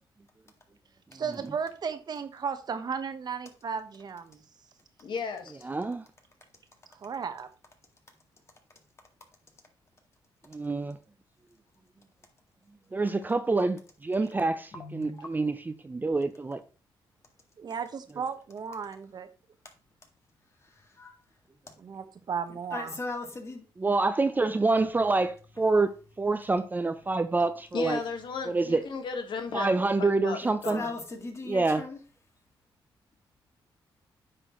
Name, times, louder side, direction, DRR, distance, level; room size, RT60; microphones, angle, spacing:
voice 1, 1.1-4.4 7.0-7.5 17.6-19.3 21.8-23.0, right 6 dB, 50° right, 1.0 m, -35 dB
voice 2, 5.0-5.4 27.7-29.7 30.0-30.9, left 4 dB, 65° left, 1.5 m, -34 dB
voice 3, 5.6-6.0 10.5-11.0 12.9-16.6 23.8-25.9 26.2-28.0 28.5-28.8 29.5-30.8 31.5-31.8, right 3 dB, 20° right, 0.5 m, -27 dB
voice 4, 14.7-15.3 21.0-21.2 22.7-23.6 30.7-32.0, left 3 dB, 30° left, 1.9 m, -37 dB
9.3 x 6.2 x 3.0 m
cardioid pair, 100°, 9 cm